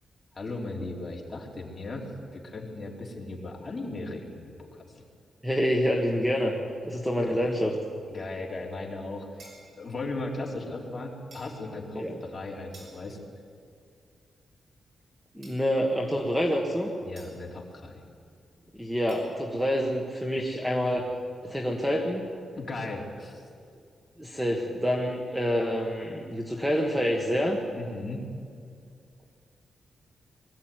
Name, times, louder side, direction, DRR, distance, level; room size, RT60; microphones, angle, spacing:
voice 1, 0.3-5.0 7.2-7.4 8.1-9.4 9.8-13.2 17.0-18.0 22.5-23.4 27.8-28.3, left 2 dB, 25° left, -2 dB, 3.3 m, -37 dB
voice 2, 5.4-6.6 6.8-7.7 11.9-12.1 15.3-16.9 18.8-21.1 21.4-22.2 24.2-27.6, equal, 5° right, 1 dB, 1.5 m, -27 dB
sound 1, 9.4-10.0 11.3-11.6 12.7-13.3 15.4-15.9 17.2-17.5 19.1-19.3, right 2 dB, 55° right, 5.9 m, -53 dB
22.0 x 14.5 x 9.2 m, 2.2 s
wide cardioid pair, 165°, 0 cm